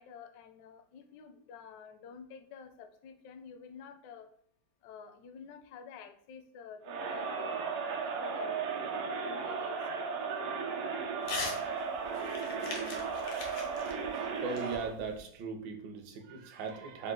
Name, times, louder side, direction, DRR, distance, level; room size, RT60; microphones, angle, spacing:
voice 1, 0.0-4.3 4.8-10.2, left 6 dB, 75° left, 6 dB, 1.0 m, -50 dB
Crowd, 6.8-15.0, right 5 dB, 85° right, 1.7 m, -35 dB
Crumpling crinkling / Tearing, 11.2-11.6 11.9-15.3, left 4 dB, 90° left, 1.9 m, -41 dB
voice 2, 14.3-17.1, right 5 dB, 65° right, 4 dB, 1.3 m, -38 dB
5.0 x 2.5 x 3.7 m, 0.67 s
omnidirectional pair, 2.4 m